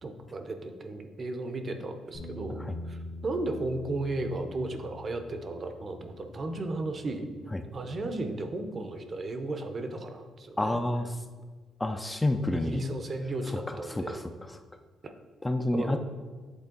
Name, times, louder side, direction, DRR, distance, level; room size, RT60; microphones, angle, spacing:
voice 1, 0.0-7.3 7.7-10.8 12.5-14.2 15.0-15.1 15.7-16.0, right 2 dB, 40° right, 7 dB, 0.7 m, -35 dB
Bass guitar, 2.1-8.4, left 2 dB, 70° left, 1.6 m, -45 dB
voice 2, 10.6-11.2 11.8-12.8 13.4-14.6 15.4-16.0, left 1 dB, 15° left, 7 dB, 0.4 m, -30 dB
8.1 x 3.3 x 3.8 m, 1.4 s
cardioid pair, 90°, 0 cm